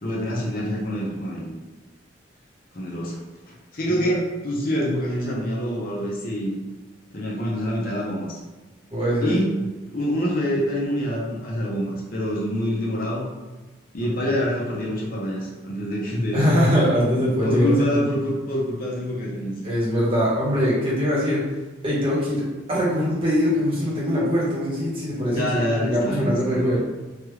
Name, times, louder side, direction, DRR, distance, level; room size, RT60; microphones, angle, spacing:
voice 1, 0.0-1.5 2.7-3.2 3.7-6.5 7.1-8.4 9.2-13.3 13.9-16.4 17.4-19.5 25.3-26.7, equal, 45° left, -4 dB, 0.6 m, -26 dB
voice 2, 8.9-9.3 14.0-14.3 16.3-18.0 19.6-21.4 21.8-26.8, equal, 30° right, -7 dB, 1.0 m, -22 dB
3.2 x 2.3 x 3.0 m, 1.2 s
head